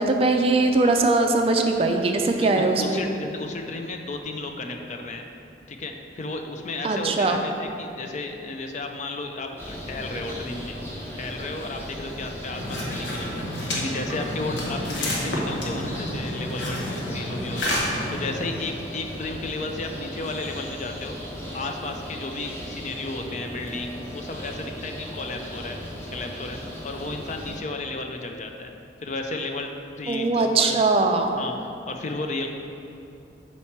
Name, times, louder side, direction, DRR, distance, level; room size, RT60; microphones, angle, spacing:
voice 1, 0.0-3.0 6.8-7.4 30.1-31.3, right 3 dB, 35° right, 4 dB, 0.4 m, -21 dB
voice 2, 2.4-5.2 5.7-10.7 11.2-17.7 18.1-21.1 21.5-25.8 26.1-28.7 29.0-30.9 31.3-32.5, left 2 dB, 40° left, 4 dB, 0.4 m, -33 dB
sound 1, 9.6-27.6, equal, 15° left, 0.9 m, -37 dB
sound 2, 12.5-18.7, left 1 dB, 85° left, 1.1 m, -30 dB
4.4 x 4.3 x 5.7 m, 2.6 s
head